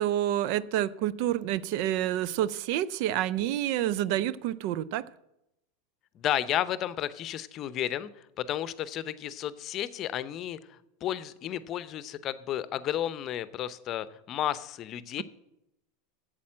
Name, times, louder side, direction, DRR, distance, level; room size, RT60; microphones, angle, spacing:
voice 1, 0.0-5.1, right 12 dB, 60° right, 0.4 m, -28 dB
voice 2, 6.2-8.1 8.4-15.2, left 11 dB, 45° left, 0.6 m, -32 dB
8.5 x 7.5 x 7.5 m
hypercardioid pair, 100°, 0 cm